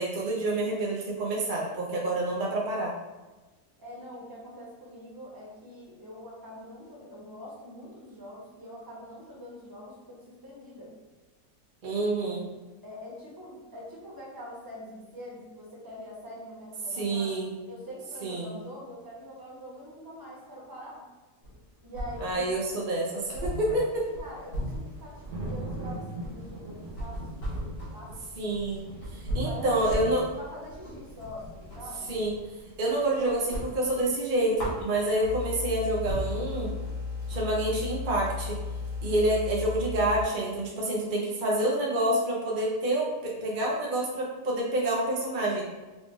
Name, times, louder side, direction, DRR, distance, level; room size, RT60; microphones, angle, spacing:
voice 1, 0.0-2.9 11.8-12.5 17.0-17.5 18.2-18.5 22.2-24.0 28.4-28.8 29.1-30.2 32.1-32.3 32.8-36.7 37.3-38.6 39.0-45.6, right 1 dB, 50° right, -3 dB, 0.5 m, -28 dB
voice 2, 3.8-10.9 12.5-17.3 17.6-21.1 21.8-22.5 23.3-23.8 24.2-28.4 29.4-29.8 30.4-32.2, equal, 15° right, -6 dB, 1.0 m, -44 dB
sound 1, 21.4-22.6 22.9-23.0 23.3-31.9 32.3-33.1 33.4-35.4 35.8-35.9 36.1-40.2, equal, 65° left, 2.0 m, -37 dB
sound 2, 22.8-39.8, right 1 dB, 75° right, 1.4 m, -45 dB
sound 3, 35.2-40.2, left 4 dB, 45° left, 0.6 m, -35 dB
4.9 x 2.4 x 3.7 m, 1.2 s
omnidirectional pair, 1.8 m